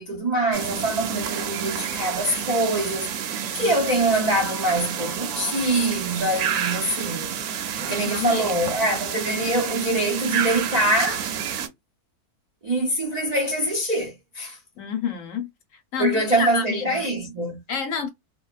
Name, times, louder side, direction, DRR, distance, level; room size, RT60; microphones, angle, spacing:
voice 1, 0.0-3.1 3.5-7.4 7.8-11.3 12.6-14.6 16.0-17.6, right 1 dB, 60° right, 0.4 m, -24 dB
sound 1, 0.5-11.7, right 8 dB, 75° right, 1.1 m, -29 dB
voice 2, 7.9-8.7 14.8-15.5 15.9-17.0 17.7-18.1, left 7 dB, 65° left, 0.9 m, -28 dB
2.6 x 2.2 x 2.3 m
omnidirectional pair, 1.6 m